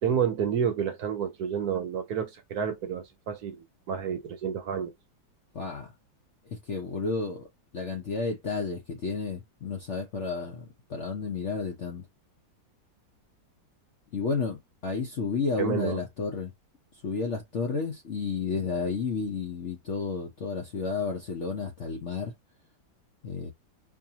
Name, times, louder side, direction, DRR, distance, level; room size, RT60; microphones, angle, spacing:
voice 1, 0.0-4.9 15.6-16.0, right 7 dB, 60° right, 1.1 m, -30 dB
voice 2, 5.5-5.9 6.5-7.4 7.7-12.1 14.1-16.5 17.0-22.3 23.2-23.5, left 4 dB, 55° left, 0.8 m, -31 dB
4.7 x 2.6 x 2.8 m
omnidirectional pair, 2.1 m